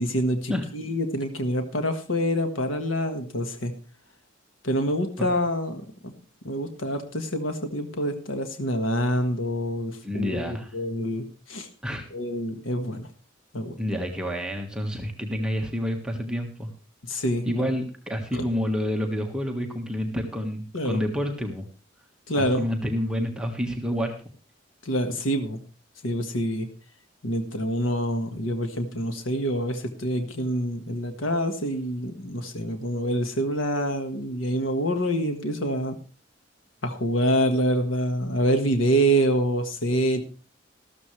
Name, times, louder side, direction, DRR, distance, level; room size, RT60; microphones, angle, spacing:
voice 1, 0.0-3.7 4.6-6.1 6.4-11.7 12.1-13.1 13.5-13.7 17.0-17.5 18.3-18.4 20.7-21.0 22.3-22.6 24.8-25.6 26.0-26.7 27.2-36.0 36.8-40.2, equal, 90° left, 6 dB, 1.6 m, -26 dB
voice 2, 10.0-10.7 11.8-12.1 13.8-16.7 17.4-21.6 22.4-24.1, equal, 5° right, 2 dB, 1.5 m, -28 dB
13.5 x 13.5 x 3.2 m, 0.36 s
head